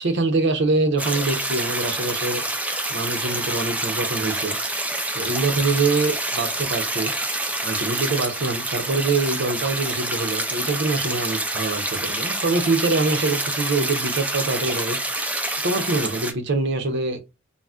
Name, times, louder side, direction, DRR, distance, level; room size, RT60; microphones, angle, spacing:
voice 1, 0.0-2.4 2.9-4.6 5.1-7.1 7.6-15.0 15.6-17.2, right 3 dB, 60° right, 0.7 m, -24 dB
sound 1, 1.0-16.3, right 1 dB, 5° right, 0.3 m, -27 dB
3.9 x 2.1 x 2.3 m
head